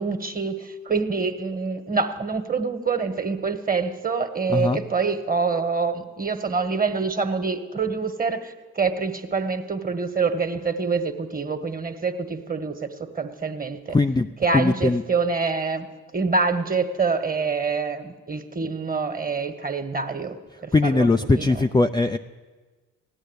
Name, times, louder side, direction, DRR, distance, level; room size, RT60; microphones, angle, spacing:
voice 1, 0.0-12.9 13.1-14.0 14.4-15.9 16.1-20.4 20.6-21.7, right 4 dB, 25° right, 8 dB, 1.7 m, -26 dB
voice 2, 13.9-14.3 14.5-15.0 20.7-22.2, left 3 dB, 10° left, 6 dB, 0.5 m, -20 dB
16.0 x 10.0 x 8.2 m, 1.3 s
hypercardioid pair, 50°, 36 cm